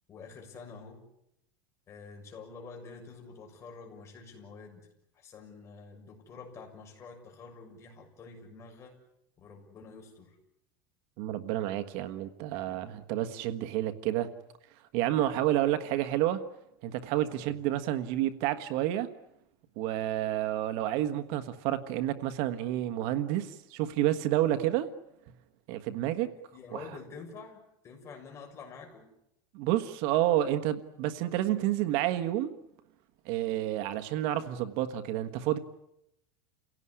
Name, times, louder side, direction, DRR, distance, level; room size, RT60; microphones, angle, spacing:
voice 1, 0.1-1.0 1.9-4.9 5.1-8.9 9.4-10.3 12.5-12.8 17.2-17.5 26.5-29.1, left 4 dB, 25° left, 2 dB, 6.7 m, -48 dB
voice 2, 11.2-14.3 14.9-16.4 16.8-19.1 19.8-24.9 25.7-26.3 26.7-26.8 29.5-32.5 33.2-35.6, right 13 dB, 55° right, 10 dB, 1.4 m, -29 dB
29.5 x 17.5 x 9.9 m, 0.83 s
supercardioid pair, 155°, 11 cm